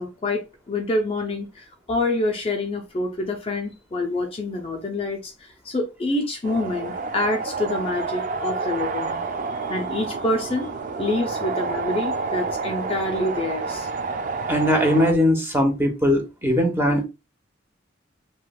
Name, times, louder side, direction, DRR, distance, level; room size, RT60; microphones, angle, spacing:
voice 1, 0.0-9.2 9.5-10.7 11.0-13.9, left 2 dB, 30° left, 0.4 m, -27 dB
sound 1, 6.4-15.1, right 4 dB, 40° right, 0.4 m, -29 dB
voice 2, 14.5-17.1, equal, 10° right, 0.7 m, -20 dB
3.1 x 2.9 x 2.2 m
head